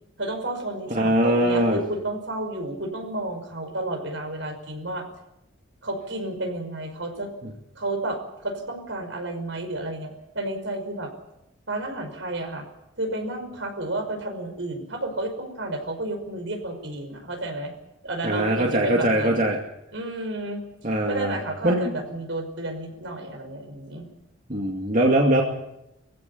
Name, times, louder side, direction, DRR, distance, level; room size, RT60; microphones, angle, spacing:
voice 1, 0.2-5.1 5.8-7.3 7.8-11.1 11.7-12.7 13.0-17.7 18.0-19.4 19.9-24.1, right 2 dB, 70° right, 5 dB, 5.5 m, -31 dB
voice 2, 0.9-1.8 18.2-19.6 20.8-21.4 21.6-21.8 24.5-25.4, right 1 dB, 40° right, 0 dB, 2.3 m, -21 dB
22.5 x 16.0 x 8.6 m, 0.87 s
head